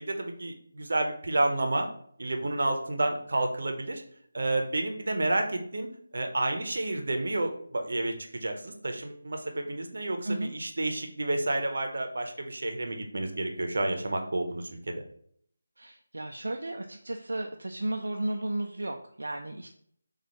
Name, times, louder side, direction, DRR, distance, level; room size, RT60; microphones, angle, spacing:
voice 1, 0.0-1.9 2.2-4.0 4.3-5.9 6.1-15.0, right 2 dB, 65° right, 4 dB, 0.7 m, -30 dB
voice 2, 15.8-19.7, right 1 dB, 85° right, 3 dB, 0.4 m, -34 dB
6.2 x 2.4 x 2.9 m, 0.64 s
figure-of-eight pair, 165°, 0 cm